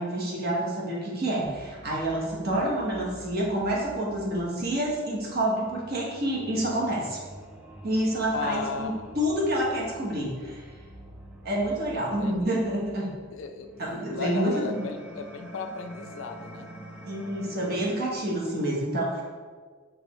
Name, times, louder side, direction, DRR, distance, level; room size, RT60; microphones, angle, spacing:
voice 1, 0.0-7.2 7.8-10.6 11.4-13.1 13.8-14.8 17.1-19.2, right 1 dB, 50° right, -3 dB, 1.0 m, -28 dB
sound 1, 1.4-18.4, right 1 dB, 5° right, 0.4 m, -47 dB
voice 2, 8.3-9.2 12.2-12.6 13.3-13.7 14.1-16.7, left 4 dB, 65° left, 7 dB, 0.3 m, -35 dB
5.2 x 3.2 x 3.0 m, 1.5 s
head